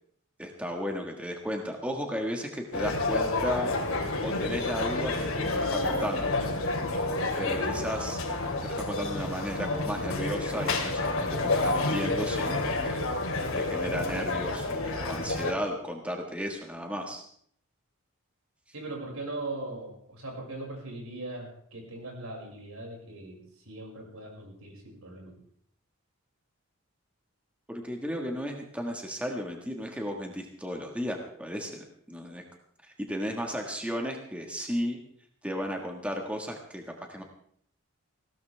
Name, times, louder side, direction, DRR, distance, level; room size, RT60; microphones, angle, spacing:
voice 1, 0.4-3.7 4.2-6.3 7.4-8.2 8.6-13.0 13.5-17.2 27.7-32.4 32.8-35.0 35.4-37.2, equal, 5° right, 2 dB, 1.6 m, -34 dB
sound 1, 2.7-15.5, left 2 dB, 70° left, 2.7 m, -29 dB
voice 2, 18.7-25.4, right 2 dB, 80° right, -1 dB, 5.8 m, -40 dB
20.5 x 16.5 x 3.4 m, 0.63 s
head